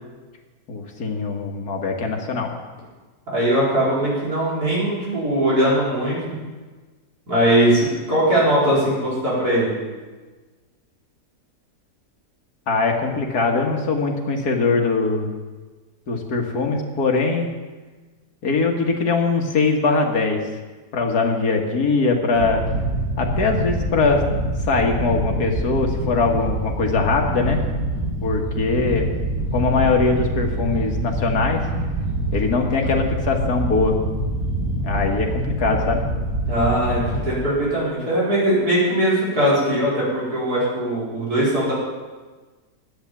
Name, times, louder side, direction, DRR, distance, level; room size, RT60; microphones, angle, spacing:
voice 1, 0.7-2.5 12.7-15.3 16.1-17.5 18.4-20.4 20.9-22.6 23.2-24.2 24.7-27.7 28.2-29.1 29.5-31.6 32.3-34.0 34.8-36.0, left 4 dB, 70° left, 2 dB, 2.1 m, -21 dB
voice 2, 3.3-6.4 7.3-9.8 36.5-41.7, right 1 dB, 65° right, -7 dB, 5.3 m, -20 dB
sound 1, 22.3-37.4, right 1 dB, 90° right, 5.1 m, -25 dB
11.5 x 9.6 x 7.2 m, 1.3 s
omnidirectional pair, 1.8 m